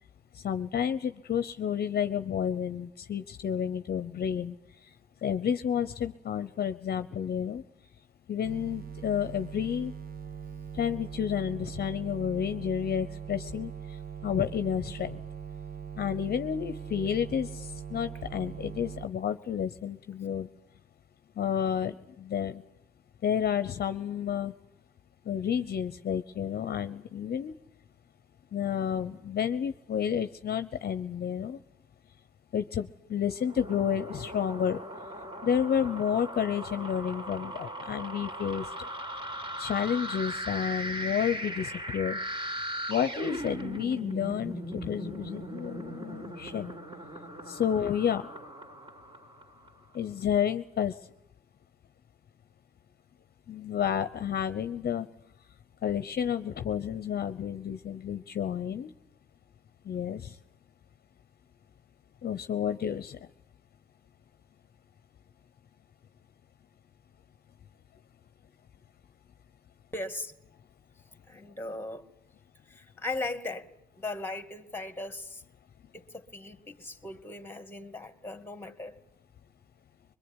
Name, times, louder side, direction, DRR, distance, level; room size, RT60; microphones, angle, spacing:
voice 1, 0.3-4.5 5.2-7.6 8.3-9.9 10.7-13.7 14.2-15.2 16.0-20.5 21.4-22.6 23.2-24.5 25.3-27.5 28.5-31.6 32.5-34.8 35.4-38.6 39.6-42.2 42.9-46.8 47.5-48.3 49.9-50.9 53.5-55.1 55.8-58.9 59.9-60.4 62.2-63.2, left 8 dB, 50° left, 0.9 m, -30 dB
sound 1, 8.4-19.1, right 7 dB, 45° right, 0.9 m, -41 dB
sound 2, 33.3-49.7, right 1 dB, 25° right, 3.6 m, -38 dB
voice 2, 69.9-70.4 71.1-72.1 72.7-73.7 74.0-75.4 75.9-79.0, left 2 dB, 10° left, 2.3 m, -38 dB
22.5 x 21.5 x 9.9 m
cardioid pair, 90°, 20 cm